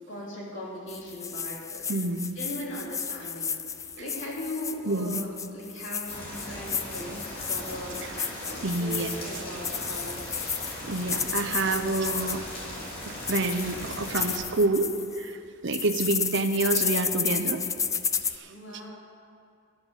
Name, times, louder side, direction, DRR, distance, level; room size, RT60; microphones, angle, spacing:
voice 1, 0.1-1.8 2.3-3.5 3.9-8.1 8.4-10.5 18.5-18.9, left 1 dB, 60° left, -4 dB, 3.4 m, -38 dB
sound 1, 0.9-12.6 13.0-15.3 15.7-18.4, left 6 dB, 15° left, 0.3 m, -32 dB
voice 2, 1.9-2.4 4.9-5.2 8.6-9.1 10.8-12.4 13.1-17.6 18.3-18.5, right 2 dB, 60° right, 8 dB, 0.8 m, -28 dB
sound 2, 6.1-14.4, left 1 dB, 45° left, 3.9 m, -38 dB
12.5 x 7.7 x 9.0 m, 2.5 s
head